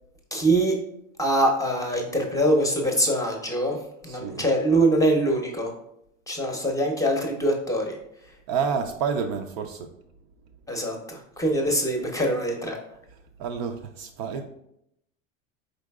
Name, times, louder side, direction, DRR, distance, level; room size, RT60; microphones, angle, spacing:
voice 1, 0.3-0.8 1.2-3.8 4.0-5.7 6.3-7.9 10.7-12.8, right 1 dB, 10° left, 1 dB, 0.7 m, -23 dB
voice 2, 4.0-4.5 8.5-9.9 13.4-14.4, right 6 dB, 50° right, 5 dB, 0.5 m, -29 dB
4.4 x 3.8 x 2.3 m, 0.77 s
hypercardioid pair, 85°, 40 cm